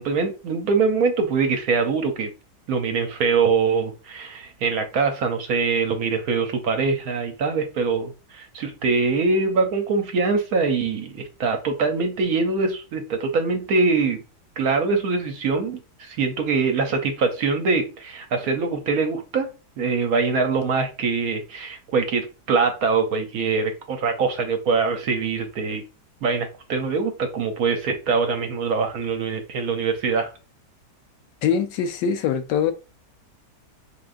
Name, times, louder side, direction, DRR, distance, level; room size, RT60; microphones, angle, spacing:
voice 1, 0.0-2.3 2.7-14.2 14.6-19.5 19.8-25.8 26.2-30.3, right 4 dB, 65° right, 1.0 m, -23 dB
voice 2, 31.4-32.7, left 7 dB, 85° left, 1.3 m, -23 dB
3.7 x 3.6 x 2.5 m
omnidirectional pair, 1.8 m